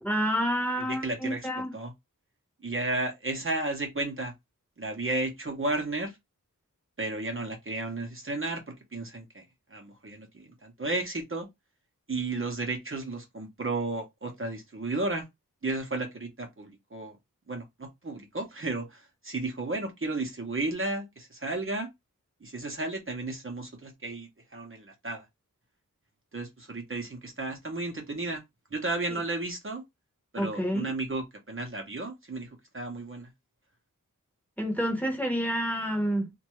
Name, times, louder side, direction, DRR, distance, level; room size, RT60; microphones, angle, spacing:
voice 1, 0.0-1.7 30.4-30.9 34.6-36.3, equal, 5° left, 0.8 m, -28 dB
voice 2, 0.8-1.5 1.7-1.9 2.6-4.3 4.8-6.1 7.0-9.4 9.7-11.5 12.1-15.3 15.6-17.2 17.5-21.9 22.4-25.2 26.3-28.4 28.7-29.8 30.3-32.5 32.7-33.3, right 2 dB, 40° right, 0.7 m, -33 dB
2.6 x 2.2 x 3.0 m
wide cardioid pair, 55°, 33 cm